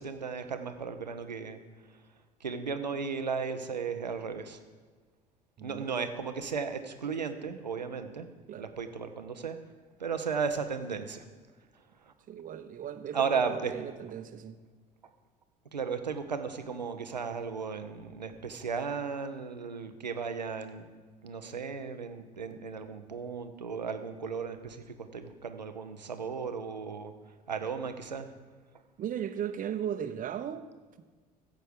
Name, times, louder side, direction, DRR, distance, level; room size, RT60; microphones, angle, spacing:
voice 1, 0.0-1.6 2.4-4.6 5.6-8.3 8.6-9.6 10.0-11.3 12.1-12.2 13.1-13.7 15.7-20.9 21.2-27.1 27.5-28.3, right 5 dB, 90° right, 8 dB, 0.8 m, -35 dB
voice 2, 5.6-6.1 8.5-8.7 12.3-14.6 29.0-30.7, right 9 dB, 40° right, 11 dB, 0.9 m, -37 dB
14.5 x 7.8 x 5.0 m, 1.4 s
figure-of-eight pair, 60°, 21 cm